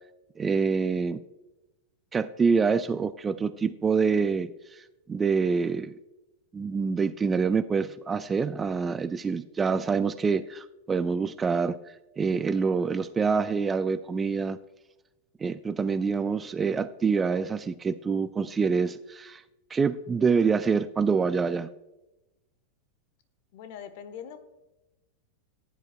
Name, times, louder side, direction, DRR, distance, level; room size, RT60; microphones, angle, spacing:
voice 1, 0.4-1.2 2.1-5.9 6.5-14.6 15.4-19.4 19.7-21.7, right 5 dB, 15° right, 15 dB, 0.4 m, -26 dB
voice 2, 23.5-24.4, left 8 dB, 50° left, 11 dB, 1.0 m, -41 dB
15.0 x 10.5 x 2.2 m, 0.98 s
figure-of-eight pair, 90°, 0 cm